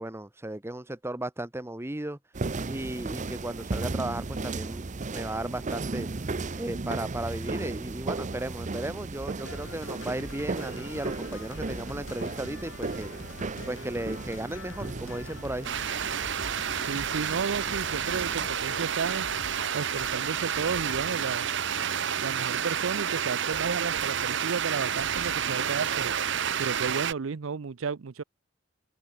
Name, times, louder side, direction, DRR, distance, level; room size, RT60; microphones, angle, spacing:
voice 1, 0.0-2.2 2.6-4.9 5.1-6.1 6.6-13.1 13.7-15.7, right 1 dB, 15° right, 1.1 m, -35 dB
sound 1, 2.3-18.5, right 3 dB, 40° right, 0.7 m, -35 dB
sound 2, 9.4-21.4, left 3 dB, 75° left, 1.8 m, -45 dB
sound 3, 15.6-27.1, right 8 dB, 65° right, 1.1 m, -30 dB
voice 2, 16.9-19.3 19.7-21.5 22.2-26.2 26.6-28.2, right 5 dB, 85° right, 0.6 m, -33 dB
open air
head